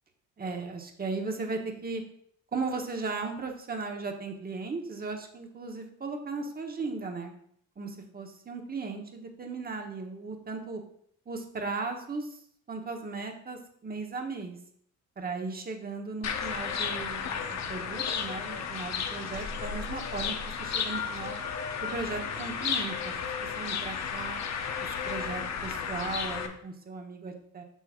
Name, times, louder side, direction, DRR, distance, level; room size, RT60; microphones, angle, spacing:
voice 1, 0.4-2.0 2.5-7.3 7.8-10.8 11.3-12.4 12.7-14.6 15.2-21.3 21.8-24.4 25.1-27.6, right 4 dB, 30° right, 3 dB, 1.2 m, -36 dB
sound 1, 16.2-26.5, left 6 dB, 55° left, 1.0 m, -33 dB
8.1 x 5.6 x 2.5 m, 0.67 s
cardioid pair, 95°, 32 cm